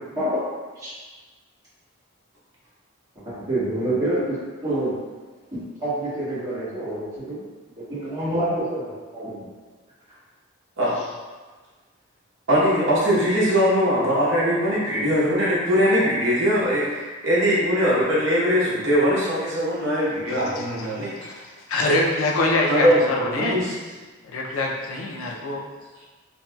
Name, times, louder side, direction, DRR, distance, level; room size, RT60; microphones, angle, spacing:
voice 1, 3.2-4.4 4.6-4.9 5.5-7.4 7.8-9.5, right 1 dB, 20° right, -13 dB, 1.4 m, -27 dB
voice 2, 12.5-21.3 22.7-23.7, equal, 65° right, -7 dB, 0.9 m, -21 dB
voice 3, 20.3-20.9 21.2-23.6 24.2-25.6, left 2 dB, 80° left, -1 dB, 0.4 m, -25 dB
2.9 x 2.8 x 2.2 m, 1.3 s
head